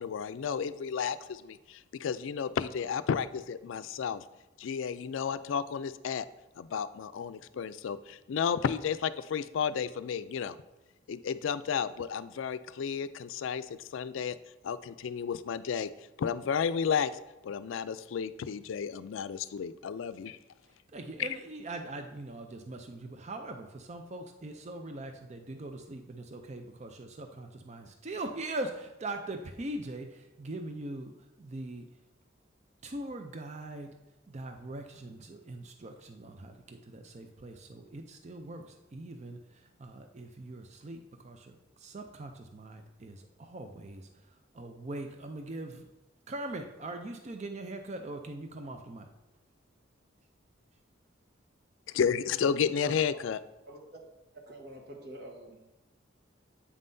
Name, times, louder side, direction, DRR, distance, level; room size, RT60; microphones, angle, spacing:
voice 1, 0.0-4.2 4.6-6.3 6.6-10.6 11.1-14.4 14.6-15.9 16.2-20.4 21.2-21.3 51.9-53.4, left 7 dB, 80° left, 14 dB, 0.3 m, -32 dB
voice 2, 20.9-31.9 32.8-33.9 34.3-41.5 41.8-44.1 44.5-45.8 46.3-49.1 52.8-53.0, right 2 dB, 35° right, 5 dB, 0.5 m, -41 dB
voice 3, 54.5-55.7, right 1 dB, 55° right, 1 dB, 1.2 m, -47 dB
8.3 x 5.5 x 2.6 m, 1.0 s
head